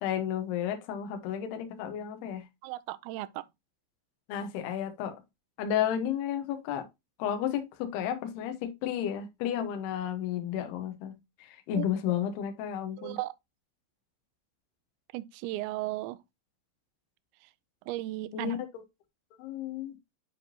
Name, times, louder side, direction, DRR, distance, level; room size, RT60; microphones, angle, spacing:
voice 1, 0.0-2.4 4.3-5.2 5.6-6.8 7.2-13.2 18.3-18.8 19.4-20.0, left 9 dB, 70° left, 2.8 m, -32 dB
voice 2, 2.6-3.4 11.7-11.9 13.0-13.3 15.1-16.2 17.9-18.6, right 17 dB, 80° right, 2.7 m, -35 dB
10.0 x 3.7 x 2.8 m
omnidirectional pair, 5.4 m